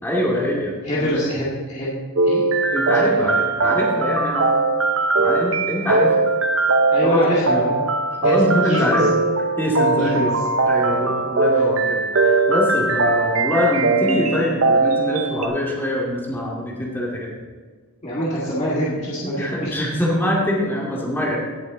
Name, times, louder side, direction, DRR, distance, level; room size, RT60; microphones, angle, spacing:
voice 1, 0.0-1.3 2.7-4.5 5.2-6.1 7.0-7.3 8.2-9.1 9.6-10.4 10.7-17.3 18.9-19.0 19.2-21.4, left 1 dB, 10° left, -4 dB, 2.2 m, -23 dB
voice 2, 0.8-1.9 2.3-2.4 3.1-3.2 6.9-7.8 8.2-8.3 8.7-9.0 10.0-10.3 10.8-11.0 18.0-19.7, equal, 30° left, -8 dB, 2.1 m, -24 dB
sound 1, 2.2-15.5, right 3 dB, 65° right, 0.9 m, -20 dB
17.0 x 7.4 x 3.9 m, 1.5 s
head